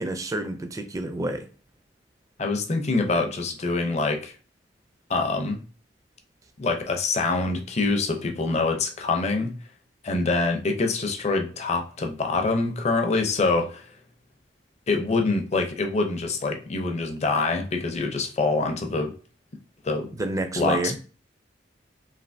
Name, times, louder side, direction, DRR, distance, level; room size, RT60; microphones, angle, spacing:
voice 1, 0.0-1.5 20.2-21.0, right 2 dB, 20° right, 7 dB, 0.4 m, -29 dB
voice 2, 2.4-4.3 5.1-5.6 6.6-9.6 10.0-13.8 14.9-19.1 19.8-20.1 20.5-21.0, left 3 dB, 40° left, 4 dB, 0.5 m, -25 dB
3.2 x 2.6 x 2.6 m, 0.38 s
head